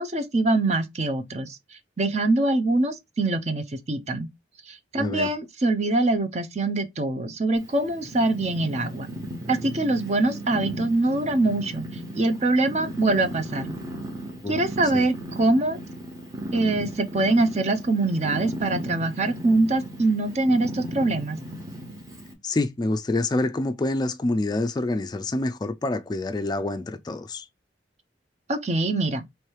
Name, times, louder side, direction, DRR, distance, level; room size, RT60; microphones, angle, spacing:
voice 1, 0.0-1.6 2.0-4.3 4.7-9.1 9.5-11.8 12.1-13.7 14.5-15.8 16.5-21.4 28.5-29.2, right 2 dB, 40° right, 0.6 m, -24 dB
voice 2, 5.0-5.3 14.4-14.6 14.9-15.1 22.4-27.5, left 2 dB, 25° left, 0.3 m, -27 dB
Purr, 7.6-22.3, equal, 20° right, 1.3 m, -36 dB
3.2 x 3.1 x 4.5 m
head